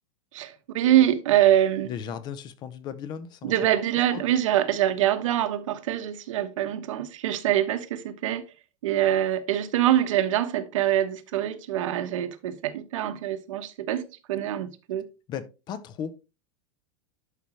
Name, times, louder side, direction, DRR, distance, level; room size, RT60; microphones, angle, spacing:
voice 1, 0.3-1.9 3.4-8.5 8.8-15.1, right 12 dB, 80° right, 1.1 m, -24 dB
voice 2, 1.8-3.5 4.1-4.2 15.3-16.2, left 8 dB, 25° left, 0.7 m, -36 dB
11.5 x 5.0 x 3.1 m
supercardioid pair, 160°, 16 cm